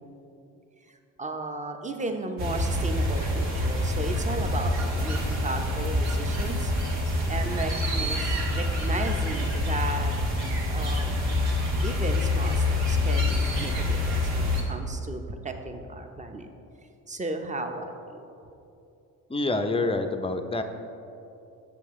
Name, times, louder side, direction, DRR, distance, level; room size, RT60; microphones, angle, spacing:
voice 1, 0.9-6.7 7.3-10.1 10.7-11.2 11.8-16.5 17.1-18.2, right 2 dB, 15° right, 5 dB, 0.8 m, -35 dB
sound 1, 2.4-14.6, left 2 dB, 85° right, 1.7 m, -26 dB
voice 2, 19.3-20.6, left 2 dB, 15° left, 7 dB, 0.6 m, -27 dB
7.7 x 6.8 x 3.7 m, 2.7 s
supercardioid pair, 60°, 42 cm